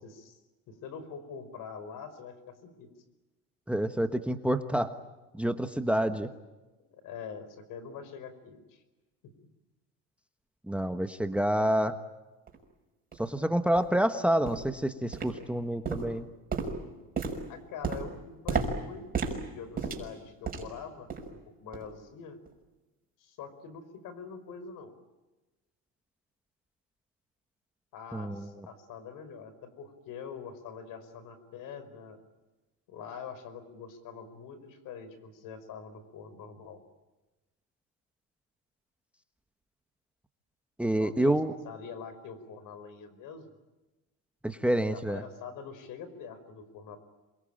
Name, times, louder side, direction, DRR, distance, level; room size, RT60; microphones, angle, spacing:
voice 1, 0.0-0.4 0.7-2.9 6.9-8.8 9.2-9.3 17.5-22.4 23.2-25.0 27.9-32.2 32.9-36.8 40.9-43.5 44.8-47.0, left 6 dB, 60° left, 13 dB, 5.0 m, -44 dB
voice 2, 3.7-4.9 5.3-6.3 10.7-12.0 13.2-16.3 28.1-28.4 40.8-41.5 44.4-45.2, right 1 dB, 5° right, 9 dB, 1.3 m, -28 dB
sound 1, 12.5-12.6 13.1-13.2 13.8-13.9 14.5-14.8 15.1-15.6 15.9-20.8 21.1-21.4 21.7-21.9 22.5-22.6, right 4 dB, 25° right, 6.0 m, -34 dB
27.5 x 22.5 x 9.0 m, 1.1 s
supercardioid pair, 115°, 36 cm